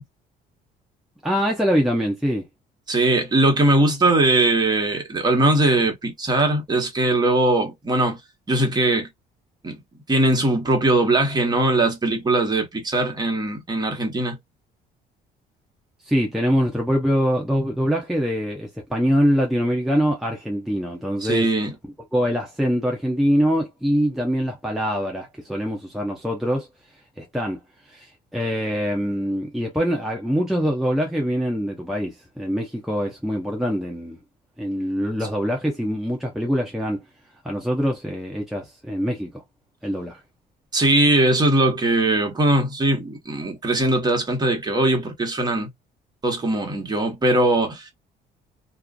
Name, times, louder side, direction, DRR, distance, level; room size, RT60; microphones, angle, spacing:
voice 1, 1.2-2.4 16.0-21.5 22.1-26.7 27.2-27.6 27.9-34.2 34.6-37.0 37.4-39.4 39.8-40.2, equal, ahead, 0.6 m, -24 dB
voice 2, 2.9-8.2 8.5-9.1 9.6-9.8 10.1-14.4 21.2-21.7 40.7-45.7 46.2-47.9, right 2 dB, 25° right, 1.1 m, -20 dB
2.4 x 2.4 x 2.2 m
cardioid pair, 110°, 17 cm